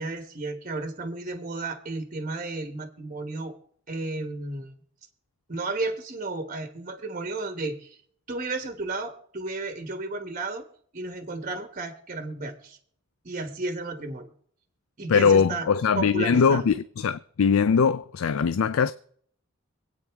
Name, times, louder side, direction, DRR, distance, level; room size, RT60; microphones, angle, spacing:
voice 1, 0.0-3.6 3.9-4.7 5.5-8.0 8.3-10.6 10.9-12.8 13.2-14.3 15.0-15.7 15.9-16.7, right 2 dB, 40° right, 1.2 m, -33 dB
voice 2, 15.1-18.9, left 6 dB, 85° left, 0.4 m, -21 dB
25.5 x 8.9 x 3.5 m
head